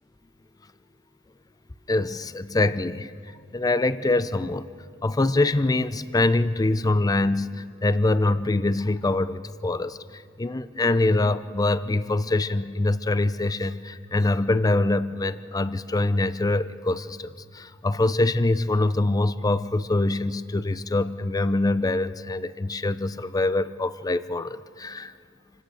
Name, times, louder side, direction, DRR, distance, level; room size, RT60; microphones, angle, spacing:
voice 1, 1.9-3.1 3.5-4.7 5.0-25.1, left 2 dB, 20° left, 14 dB, 0.5 m, -24 dB
27.5 x 16.5 x 6.4 m, 2.2 s
head